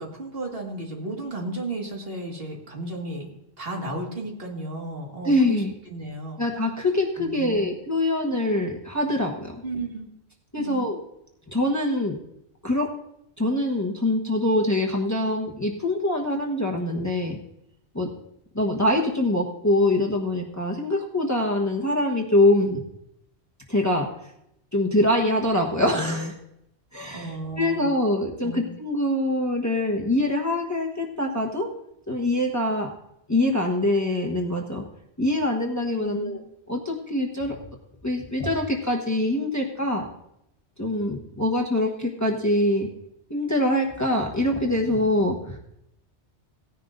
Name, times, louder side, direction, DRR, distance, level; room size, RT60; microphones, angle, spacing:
voice 1, 0.0-3.3 3.6-6.4 7.2-7.7 9.6-10.1 10.6-10.9 27.1-27.9 28.4-28.7 35.9-36.4, right 2 dB, 60° right, 0 dB, 2.1 m, -34 dB
voice 2, 5.2-5.7 6.4-9.6 10.5-11.0 11.5-12.1 12.6-12.9 13.4-17.4 17.9-18.1 18.5-22.8 23.7-24.1 24.7-26.4 26.9-31.7 32.1-32.9 33.3-34.8 35.2-36.4 36.7-37.6 38.0-40.1 40.8-42.9 43.3-45.6, left 1 dB, 15° left, 0 dB, 1.2 m, -24 dB
18.0 x 10.0 x 2.6 m, 0.80 s
omnidirectional pair, 1.1 m